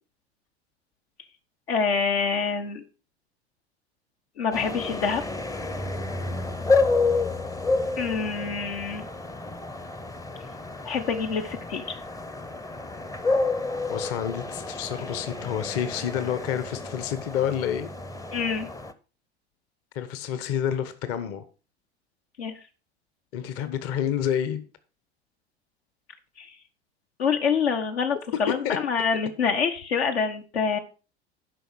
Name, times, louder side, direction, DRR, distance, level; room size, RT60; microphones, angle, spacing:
voice 1, 1.7-2.8 4.4-5.2 8.0-9.0 10.8-12.0 18.3-18.7 22.4-22.5 26.4-26.5 27.2-30.8, left 5 dB, 70° left, 1.2 m, -26 dB
sound 1, 4.5-18.9, left 3 dB, 10° left, 0.7 m, -30 dB
voice 2, 13.9-17.9 19.9-21.4 23.3-24.6 28.5-28.8, left 9 dB, 45° left, 1.1 m, -29 dB
11.5 x 5.3 x 4.8 m
figure-of-eight pair, 75°, 33 cm